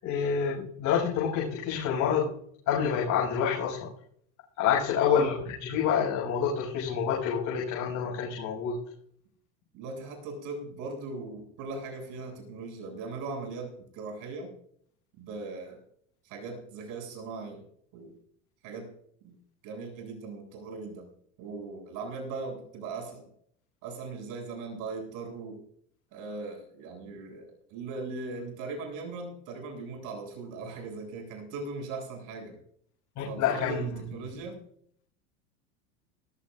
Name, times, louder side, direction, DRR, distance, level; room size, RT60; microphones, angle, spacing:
voice 1, 0.0-2.3 2.7-3.9 4.6-5.4 5.6-8.8 33.2-33.8, left 7 dB, 50° left, -3 dB, 7.3 m, -27 dB
voice 2, 9.7-14.5 15.2-15.8 16.2-17.6 17.9-18.2 18.6-18.9 19.2-19.3 19.6-21.1 21.4-23.2 23.8-25.6 26.1-32.6 33.2-34.6, right 3 dB, 60° right, 1 dB, 7.9 m, -39 dB
20.5 x 18.0 x 2.6 m, 0.65 s
supercardioid pair, 100°, 37 cm